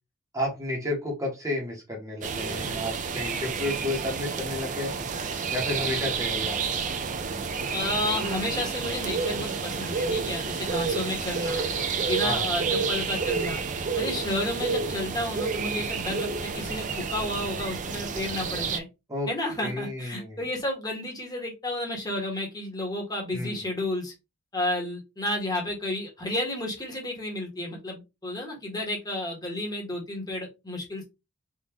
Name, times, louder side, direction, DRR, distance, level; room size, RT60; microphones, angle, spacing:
voice 1, 0.3-4.9 5.5-6.8 12.2-12.4 19.1-19.3 19.6-20.4 23.3-23.6, left 1 dB, 15° right, -1 dB, 1.1 m, -31 dB
sound 1, 2.2-18.8, right 5 dB, 35° right, 0.4 m, -30 dB
voice 2, 7.7-11.7 12.1-13.6 14.0-16.3 16.5-18.9 19.3-24.1 24.5-31.0, left 1 dB, 20° left, -1 dB, 1.2 m, -31 dB
3.6 x 2.6 x 2.9 m, 0.24 s
head